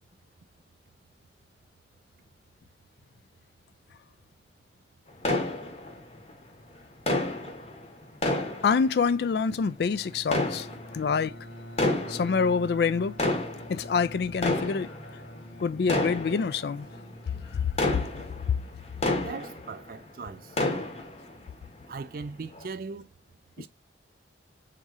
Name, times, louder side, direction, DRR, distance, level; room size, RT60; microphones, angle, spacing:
sound 1, 5.2-6.3 7.1-9.4 10.2-11.2 11.7-12.6 13.0-20.0 20.3-21.4 21.8-21.9 22.5-22.7, left 2 dB, 35° left, 0.9 m, -30 dB
voice 1, 8.6-10.7 10.9-11.3 12.1-13.2 13.7-14.9 15.6-16.9 17.3-18.0 18.5-18.6, left 5 dB, 60° left, 0.3 m, -26 dB
Bowed string instrument, 9.5-17.9, equal, 85° left, 1.7 m, -45 dB
voice 2, 19.2-20.6 21.9-23.1 23.6-23.7, right 4 dB, 50° right, 0.4 m, -39 dB
3.6 x 2.8 x 4.7 m
head